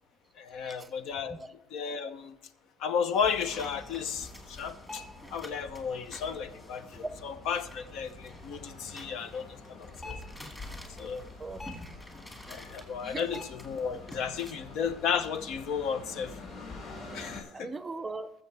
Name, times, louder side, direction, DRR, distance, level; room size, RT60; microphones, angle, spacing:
voice 1, 0.4-1.4 1.7-2.3 2.8-5.0 5.3-10.2 11.0-11.3 12.5-16.3 17.1-17.7, left 6 dB, 65° left, 11 dB, 0.8 m, -33 dB
sound 1, 3.1-14.5, left 1 dB, 15° left, 1.8 m, -49 dB
sound 2, 3.2-17.4, left 2 dB, 45° left, 4.9 m, -47 dB
voice 2, 11.4-11.9 13.0-13.3 17.5-18.3, right 3 dB, 15° right, 12 dB, 0.5 m, -40 dB
21.0 x 7.1 x 3.3 m, 0.83 s
cardioid pair, 150°, 0 cm